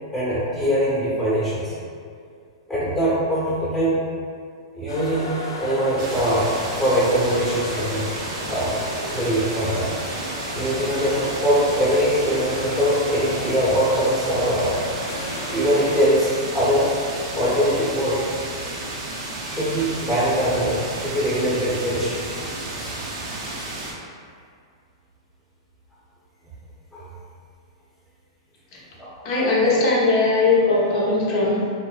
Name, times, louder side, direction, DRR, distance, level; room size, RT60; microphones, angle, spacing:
voice 1, 0.1-1.7 2.7-4.0 4.7-5.3 5.6-6.5 6.8-8.1 8.5-8.8 9.1-10.0 10.5-14.8 15.5-16.9 17.3-18.3 19.4-22.4 22.8-23.0 26.9-27.1 29.0-29.1 29.6-29.8, equal, 10° left, -10 dB, 1.0 m, -22 dB
sound 1, 4.9-16.0, equal, 75° left, 0.9 m, -34 dB
sound 2, 6.0-23.9, right 2 dB, 45° right, 0.6 m, -32 dB
voice 2, 29.2-31.7, left 3 dB, 45° left, -5 dB, 0.8 m, -19 dB
3.3 x 2.1 x 2.4 m, 2.3 s
hypercardioid pair, 115°, 3 cm